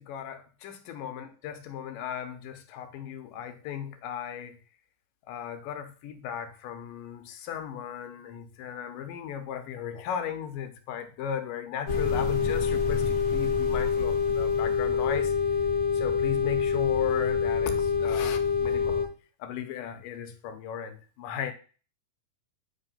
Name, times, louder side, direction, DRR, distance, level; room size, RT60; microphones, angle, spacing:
voice 1, 0.0-4.6 5.3-15.3 15.9-19.1 19.4-21.5, left 8 dB, 80° left, 2.5 m, -36 dB
sound 1, 11.9-19.1, left 6 dB, 65° left, 0.9 m, -26 dB
9.8 x 3.3 x 5.6 m
omnidirectional pair, 4.0 m